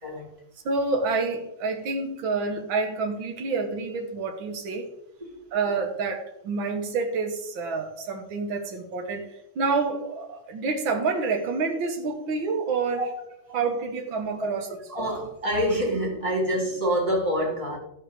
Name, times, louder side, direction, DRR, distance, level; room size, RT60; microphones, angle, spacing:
voice 1, 0.6-4.9 5.5-13.0 13.5-14.7, right 4 dB, 70° right, 2.3 m, -28 dB
voice 2, 14.9-17.8, equal, 15° right, 3.4 m, -26 dB
13.5 x 5.5 x 6.8 m
omnidirectional pair, 2.3 m